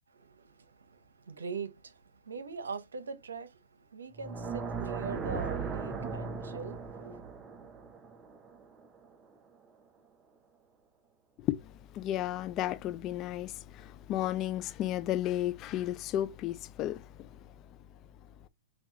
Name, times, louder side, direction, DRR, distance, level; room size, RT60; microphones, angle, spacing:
voice 1, 0.1-7.2, right 5 dB, 85° right, 0.8 m, -42 dB
sound 1, 4.1-9.3, right 5 dB, 20° right, 0.7 m, -38 dB
voice 2, 11.4-17.4, left 13 dB, 35° left, 0.4 m, -33 dB
5.7 x 2.4 x 2.8 m
hypercardioid pair, 115°, 0 cm